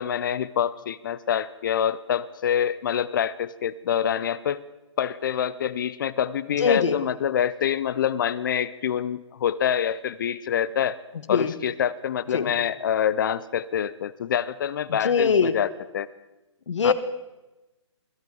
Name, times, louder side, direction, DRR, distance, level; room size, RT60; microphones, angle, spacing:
voice 1, 0.0-4.6 5.0-11.0 11.3-15.7 15.9-16.1 16.8-16.9, left 9 dB, 45° left, 18 dB, 0.5 m, -26 dB
voice 2, 6.6-7.0 11.3-11.5 12.3-12.5 14.9-15.5 16.7-16.9, left 5 dB, 75° left, 11 dB, 1.4 m, -22 dB
23.0 x 12.5 x 3.9 m, 1.0 s
hypercardioid pair, 155°, 15 cm